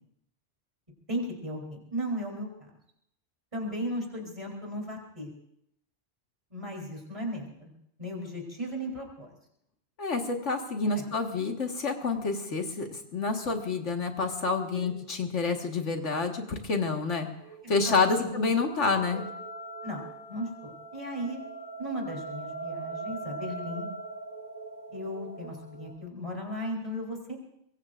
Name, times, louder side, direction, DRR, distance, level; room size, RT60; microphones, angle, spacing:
voice 1, 1.1-2.7 3.5-5.3 6.5-7.7 8.0-9.3 10.8-11.1 14.7-14.9 17.8-18.3 19.1-19.2 19.8-20.0 20.3-21.4 21.8-23.9 24.9-27.4, equal, 25° right, 0 dB, 3.7 m, -36 dB
voice 2, 10.0-17.3 17.7-19.2, left 4 dB, 80° left, 3 dB, 2.0 m, -28 dB
sound 1, 17.3-25.9, right 3 dB, 20° left, 4.8 m, -41 dB
24.0 x 22.0 x 2.5 m, 0.74 s
omnidirectional pair, 1.2 m